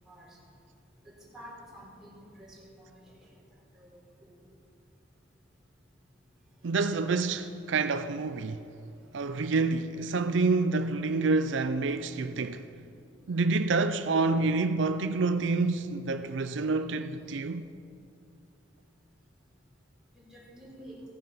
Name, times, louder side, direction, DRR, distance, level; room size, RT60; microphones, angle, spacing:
voice 1, 1.3-3.0 3.8-3.9 4.2-4.4 20.1-21.0, equal, 5° right, 3.8 m, -49 dB
voice 2, 6.6-8.6 9.1-12.6 13.3-17.7, right 3 dB, 75° right, 0.5 m, -28 dB
16.0 x 10.5 x 5.6 m
head